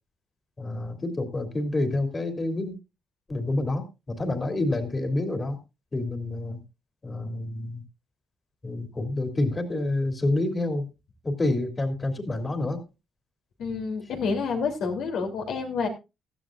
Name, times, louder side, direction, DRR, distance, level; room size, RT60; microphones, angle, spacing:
voice 1, 0.6-2.7 3.3-5.6 5.9-6.6 7.0-7.8 8.6-10.8 11.2-12.8, left 2 dB, 25° left, 7 dB, 3.0 m, -28 dB
voice 2, 13.6-15.9, left 5 dB, 75° left, 3 dB, 3.2 m, -28 dB
16.5 x 12.5 x 2.6 m, 0.26 s
cardioid pair, 90°, 0 cm